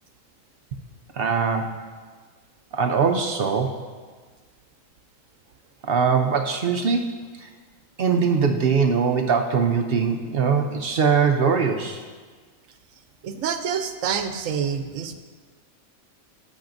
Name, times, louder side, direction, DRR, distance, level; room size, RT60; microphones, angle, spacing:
voice 1, 1.2-1.8 2.7-3.8 5.8-7.1 7.4-7.5 8.0-12.0, right 5 dB, 60° right, 4 dB, 0.7 m, -21 dB
voice 2, 13.2-15.1, right 7 dB, 75° right, 8 dB, 1.0 m, -27 dB
17.5 x 6.3 x 2.6 m, 1.5 s
omnidirectional pair, 1.4 m